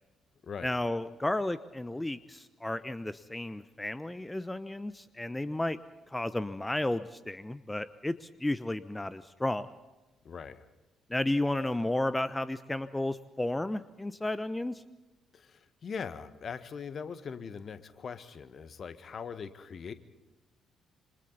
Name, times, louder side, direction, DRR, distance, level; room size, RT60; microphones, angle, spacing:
voice 1, 0.6-5.8 6.1-9.8 11.1-14.8, left 1 dB, 15° left, 14 dB, 1.0 m, -33 dB
voice 2, 10.2-10.7 15.3-19.9, left 6 dB, 45° left, 12 dB, 1.7 m, -41 dB
28.0 x 26.5 x 4.1 m, 1.1 s
figure-of-eight pair, 45°, 0 cm